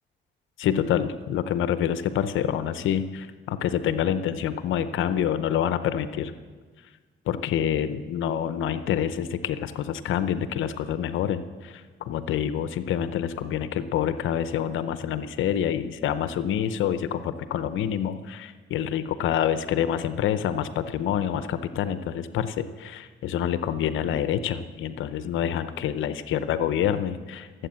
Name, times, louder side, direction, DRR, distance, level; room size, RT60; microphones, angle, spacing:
voice 1, 0.6-6.3 7.3-27.7, left 9 dB, 80° left, 12 dB, 0.7 m, -27 dB
16.5 x 8.2 x 7.4 m, 1.4 s
cardioid pair, 90°, 20 cm